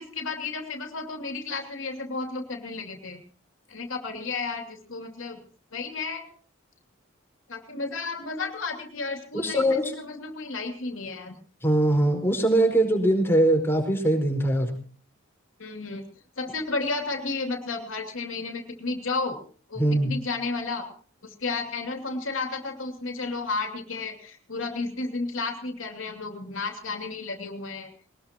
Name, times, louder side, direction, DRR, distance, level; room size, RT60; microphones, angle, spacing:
voice 1, 0.0-3.2 3.7-5.4 5.7-6.3 7.5-11.4 15.6-16.0 16.4-19.4 19.7-20.9 21.2-27.9, left 3 dB, 75° left, 4 dB, 2.8 m, -32 dB
voice 2, 9.3-9.9 11.6-14.8 19.8-20.1, right 1 dB, 10° left, 2 dB, 4.9 m, -22 dB
21.5 x 20.0 x 3.0 m, 0.43 s
head